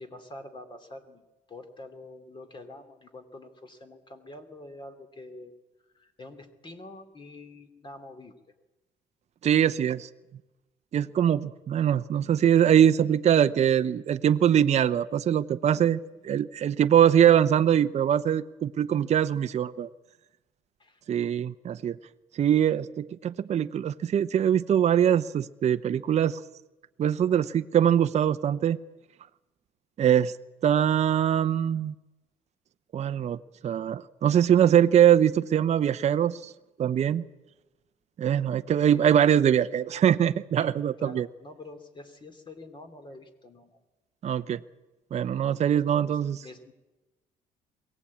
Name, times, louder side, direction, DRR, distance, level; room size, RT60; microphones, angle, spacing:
voice 1, 0.0-5.5 5.9-8.3 20.8-21.0 22.9-23.0 38.8-39.1 40.6-40.7 41.0-43.8 45.7-46.7, left 2 dB, 30° left, 8 dB, 2.8 m, -46 dB
voice 2, 9.4-10.1 10.9-19.9 21.1-22.0 22.3-26.4 27.0-28.8 30.0-30.3 30.6-31.9 32.9-36.5 36.8-37.2 38.2-41.3 44.2-44.6 45.1-46.4, right 9 dB, 40° right, 10 dB, 0.7 m, -23 dB
22.5 x 17.5 x 8.5 m, 1.1 s
cardioid pair, 110°, 17 cm